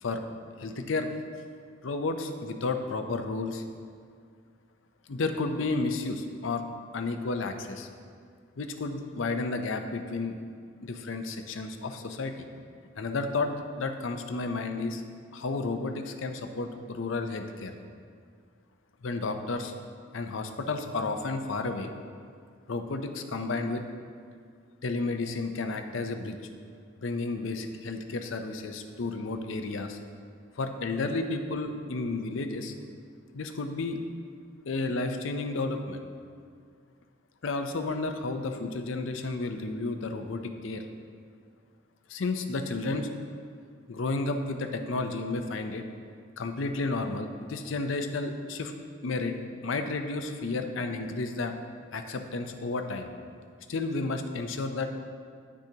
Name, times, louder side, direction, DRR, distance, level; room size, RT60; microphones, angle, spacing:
voice 1, 0.6-1.1 1.8-3.6 5.1-6.6 6.9-7.9 8.6-10.3 10.8-12.5 13.0-15.0 15.3-17.7 19.0-19.7 20.1-21.9 22.7-23.8 24.8-26.4 27.0-30.0 30.6-32.7 33.3-34.0 34.6-36.0 37.4-40.8 42.1-43.1 43.9-45.8 46.4-48.7 49.0-49.3 49.6-51.5 51.9-53.1 53.7-54.9, left 3 dB, 75° left, 6 dB, 0.6 m, -32 dB
10.0 x 6.2 x 2.8 m, 2.1 s
head